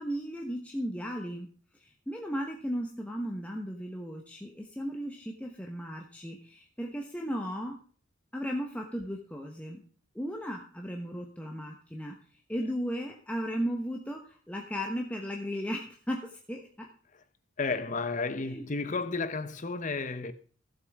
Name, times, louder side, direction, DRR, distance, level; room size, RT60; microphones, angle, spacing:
voice 1, 0.0-1.5 1.7-7.8 8.3-9.8 10.1-12.2 12.5-16.9 18.4-18.6, equal, 5° left, 1.1 m, -36 dB
voice 2, 17.6-20.3, left 4 dB, 40° left, 0.8 m, -32 dB
15.5 x 7.7 x 3.6 m
head